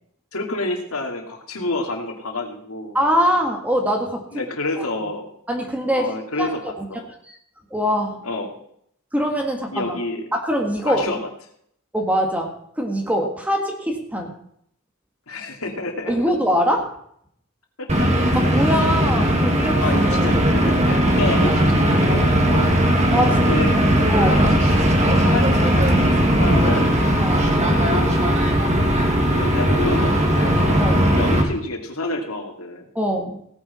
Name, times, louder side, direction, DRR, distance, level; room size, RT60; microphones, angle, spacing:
voice 1, 0.3-3.0 4.3-5.3 5.9-7.1 8.2-8.5 9.7-10.2 10.8-11.2 15.3-16.3 17.8-18.1 19.7-22.8 23.3-23.7 24.0-24.7 25.2-26.9 27.7-28.1 29.2-30.8 31.1-32.8, left 2 dB, 85° left, 3 dB, 2.7 m, -29 dB
voice 2, 2.9-4.4 5.5-6.9 7.7-8.2 9.1-9.9 10.3-11.1 11.9-14.4 16.1-16.9 18.4-19.8 23.1-23.5 23.7-23.8 24.1-24.4 27.2-27.5 30.8-31.0 33.0-33.4, equal, 5° right, 2 dB, 1.8 m, -23 dB
sound 1, 17.9-31.4, equal, 35° right, 2.3 m, -18 dB
17.5 x 9.5 x 4.4 m, 0.68 s
head